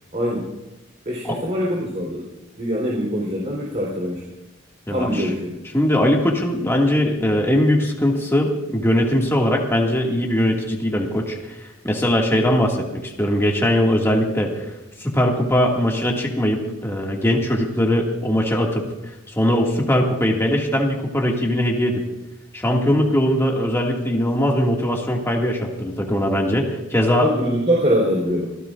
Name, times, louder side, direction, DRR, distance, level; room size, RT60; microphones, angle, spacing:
voice 1, 0.1-0.5 1.1-2.3 2.6-4.2 4.9-5.6 27.2-28.5, equal, 35° right, -3 dB, 3.8 m, -23 dB
voice 2, 4.9-5.3 5.7-14.7 15.0-18.8 19.3-22.0 22.5-27.3, equal, 10° left, -1 dB, 2.1 m, -20 dB
25.0 x 17.0 x 2.5 m, 0.98 s
head